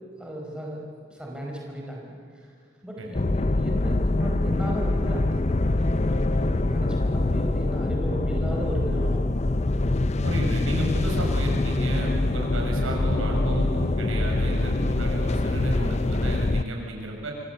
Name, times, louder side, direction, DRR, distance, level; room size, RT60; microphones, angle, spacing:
voice 1, 0.2-0.8 1.1-2.5 2.8-9.5, equal, 5° right, -2 dB, 5.0 m, -35 dB
sound 1, 3.1-16.6, left 2 dB, 35° left, 0.6 m, -24 dB
voice 2, 10.2-17.3, right 1 dB, 90° right, 0 dB, 6.5 m, -32 dB
27.5 x 25.5 x 8.0 m, 2.4 s
head